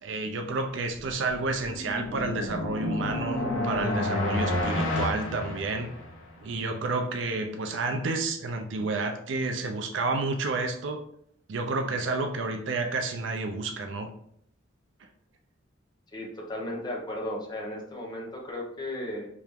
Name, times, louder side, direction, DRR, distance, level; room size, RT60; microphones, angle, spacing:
voice 1, 0.0-5.9 6.4-11.0 11.5-14.1, right 3 dB, 70° right, 4 dB, 0.4 m, -30 dB
sound 1, 1.3-6.3, left 1 dB, 85° left, 0.7 m, -30 dB
voice 2, 16.1-19.3, left 1 dB, 20° left, -1 dB, 0.7 m, -35 dB
3.4 x 2.8 x 3.4 m, 0.68 s
head